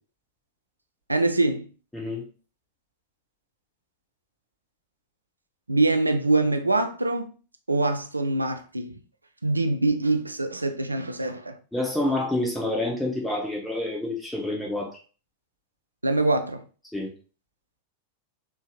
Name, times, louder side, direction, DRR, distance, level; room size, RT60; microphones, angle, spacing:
voice 1, 1.1-1.7 5.7-7.3 7.7-9.0 9.4-11.6 16.0-16.6, right 2 dB, 80° right, 0.4 m, -24 dB
voice 2, 1.9-2.2 11.7-15.0 16.9-17.1, left 1 dB, 5° left, 0.6 m, -28 dB
3.8 x 2.5 x 2.2 m
figure-of-eight pair, 90°, 0 cm